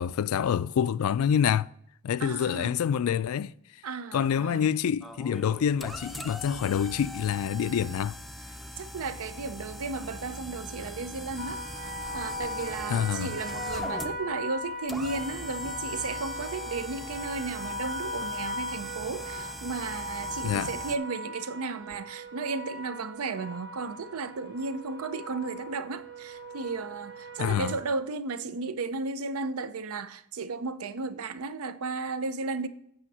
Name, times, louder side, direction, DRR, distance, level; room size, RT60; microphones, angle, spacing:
voice 1, 0.0-1.7 2.0-3.5 4.1-8.2 12.9-13.3 20.4-20.7 27.4-27.7, left 8 dB, 70° left, 0.3 m, -27 dB
voice 2, 2.2-2.7 3.8-4.7 8.8-11.6 12.1-32.7, right 4 dB, 75° right, 0.6 m, -34 dB
sound 1, 5.0-21.0, left 1 dB, ahead, 0.5 m, -41 dB
sound 2, 11.4-27.8, equal, 55° right, 1.1 m, -38 dB
sound 3, 15.5-20.8 21.0-22.9 23.1-23.3, equal, 25° right, 2.3 m, -60 dB
8.6 x 5.6 x 6.1 m
head